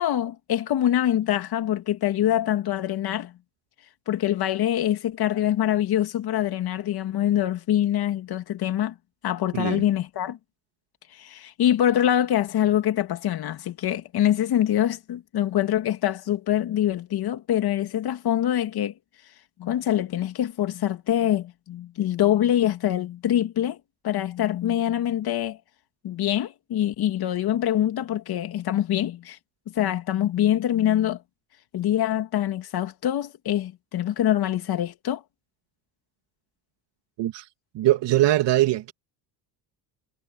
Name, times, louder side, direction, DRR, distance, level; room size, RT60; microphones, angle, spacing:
voice 1, 0.0-3.3 4.1-8.9 9.2-10.4 11.1-18.9 19.6-23.8 24.0-25.6 26.0-29.4 29.7-31.2 31.7-35.2, left 11 dB, 55° left, 2.5 m, -24 dB
voice 2, 9.5-9.8 37.2-37.5 37.7-38.9, right 15 dB, 70° right, 2.4 m, -22 dB
cardioid pair, 120°, 44 cm